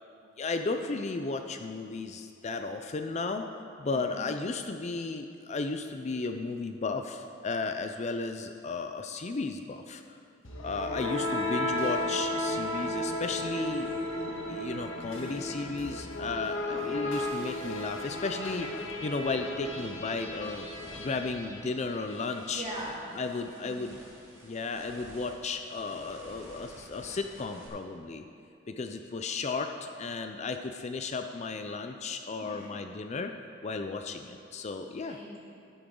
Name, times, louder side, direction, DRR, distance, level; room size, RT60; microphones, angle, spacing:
voice 1, 0.4-3.5 3.8-10.2 10.6-13.9 14.5-18.7 19.0-20.6 21.0-22.6 23.2-24.0 24.4-28.2 28.7-33.3 33.6-35.2, left 3 dB, 35° left, 6 dB, 0.5 m, -34 dB
voice 2, 3.9-4.2 11.0-11.3 16.6-17.1 22.4-23.1 23.6-23.8 32.4-32.7 35.0-35.6, right 1 dB, 35° right, -6 dB, 3.0 m, -42 dB
sound 1, 10.4-22.3, left 1 dB, 85° left, 1.8 m, -34 dB
sound 2, 19.5-27.7, equal, 15° right, 2.2 m, -53 dB
12.5 x 11.5 x 3.8 m, 2.4 s
head